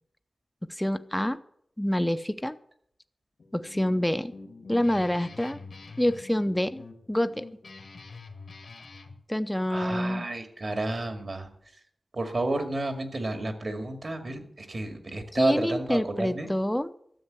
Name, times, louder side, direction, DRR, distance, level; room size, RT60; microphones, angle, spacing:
voice 1, 0.8-1.4 1.8-2.5 3.5-4.3 4.7-5.6 6.0-6.8 7.1-7.5 9.3-10.3 15.3-16.9, left 1 dB, 10° left, 11 dB, 0.6 m, -27 dB
Guitar, 3.4-9.2, left 3 dB, 75° left, 1.6 m, -46 dB
voice 2, 9.7-11.5 12.1-16.5, right 2 dB, 55° right, 6 dB, 2.1 m, -31 dB
13.0 x 7.2 x 8.2 m, 0.69 s
wide cardioid pair, 95°, 0 cm